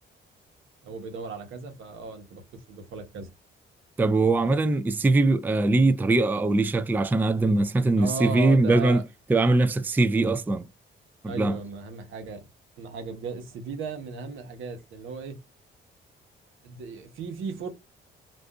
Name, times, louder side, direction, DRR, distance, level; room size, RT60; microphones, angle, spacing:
voice 1, 0.8-3.3 8.0-9.0 11.3-12.4 12.8-15.4 16.6-17.7, right 4 dB, 85° right, 1.0 m, -36 dB
voice 2, 4.0-9.0 9.3-10.6 11.2-11.6, right 2 dB, 10° right, 0.3 m, -22 dB
2.6 x 2.4 x 3.4 m
cardioid pair, 90°, 20 cm